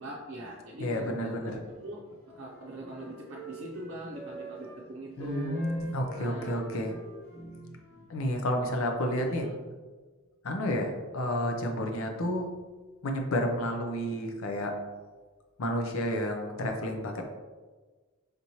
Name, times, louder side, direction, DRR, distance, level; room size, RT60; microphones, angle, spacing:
voice 1, 0.0-7.0 7.3-8.2 9.4-9.6 12.4-12.5, right 1 dB, 60° right, -5 dB, 0.6 m, -42 dB
voice 2, 0.8-1.6 5.2-6.9 8.1-9.5 10.4-12.5 13.0-14.7 15.6-17.2, equal, 75° left, 3 dB, 0.6 m, -30 dB
Wind instrument woodwind instrument, 1.7-4.8 5.3-8.4, right 3 dB, 10° left, 1.1 m, -47 dB
5.1 x 3.0 x 2.7 m, 1.4 s
head